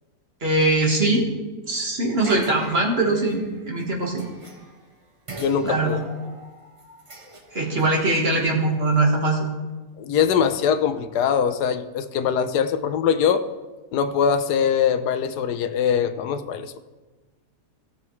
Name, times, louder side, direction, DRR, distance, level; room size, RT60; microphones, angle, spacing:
voice 1, 0.4-1.3 1.7-4.2 5.6-6.0 7.5-9.4, right 2 dB, 40° right, 0 dB, 1.6 m, -21 dB
sound 1, 2.2-4.9 5.3-9.0, right 2 dB, 25° right, 1.0 m, -42 dB
voice 2, 5.4-6.0 10.0-13.4 13.9-16.8, left 7 dB, 80° left, 10 dB, 1.2 m, -22 dB
17.5 x 7.0 x 3.1 m, 1.3 s
omnidirectional pair, 1.7 m